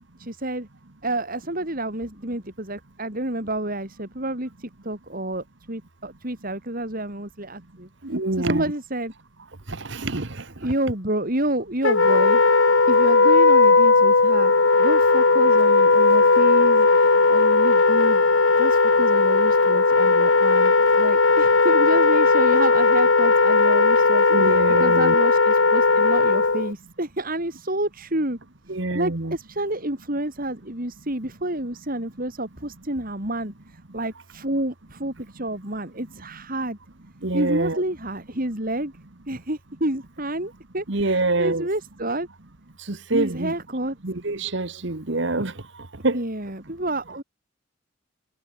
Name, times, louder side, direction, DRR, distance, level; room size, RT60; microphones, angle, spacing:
voice 1, 0.2-0.7 1.0-7.9 8.4-9.1 10.6-12.4 12.9-18.2 18.6-28.4 28.7-36.8 37.3-38.9 39.3-42.3 43.1-44.0 46.1-47.2, right 1 dB, 45° right, 5.3 m, -29 dB
voice 2, 8.0-8.7 9.7-10.3 24.3-25.2 28.7-29.4 37.2-37.8 40.9-41.7 42.9-43.5 44.0-45.5 46.0-46.2, right 2 dB, 60° right, 1.5 m, -25 dB
Wind instrument woodwind instrument, 11.8-26.7, left 3 dB, 70° left, 1.4 m, -17 dB
head